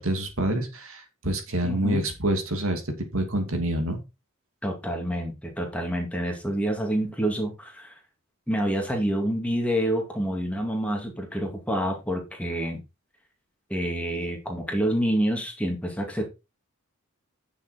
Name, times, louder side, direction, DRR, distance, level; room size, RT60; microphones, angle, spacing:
voice 1, 0.0-2.8 3.1-4.0, right 1 dB, 70° right, 5 dB, 2.7 m, -27 dB
voice 2, 1.6-2.1 4.6-7.9 8.5-12.8 13.7-16.2, right 1 dB, 5° left, 1 dB, 2.4 m, -27 dB
9.4 x 6.9 x 4.3 m, 0.27 s
head